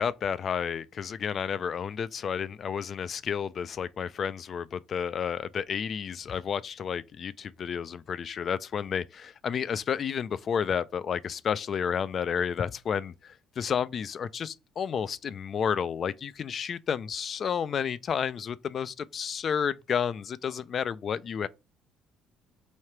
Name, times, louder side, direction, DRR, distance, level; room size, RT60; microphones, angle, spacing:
voice 1, 0.0-21.5, left 7 dB, 45° left, 0.3 m, -31 dB
3.2 x 2.8 x 4.4 m
cardioid pair, 120°, 0 cm